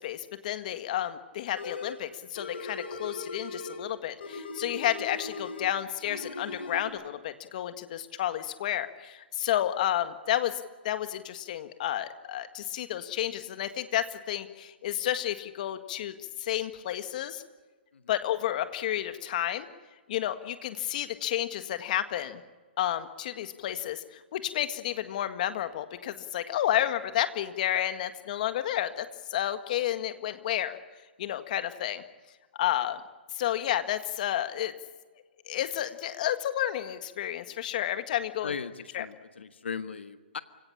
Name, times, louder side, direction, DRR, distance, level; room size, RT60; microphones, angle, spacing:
voice 1, 0.0-17.4 18.1-19.7 20.1-22.4 22.8-30.8 31.2-32.0 32.6-33.0 33.3-34.7 35.5-38.5 38.9-39.1, left 12 dB, 45° left, 10 dB, 1.8 m, -31 dB
sound 1, 1.5-2.0 2.4-3.9 4.2-5.7 6.0-6.9, left 3 dB, 70° left, 4.8 m, -39 dB
voice 2, 38.4-40.4, left 6 dB, 85° left, 11 dB, 1.4 m, -38 dB
29.0 x 17.5 x 8.7 m, 1.4 s
hypercardioid pair, 155°, 6 cm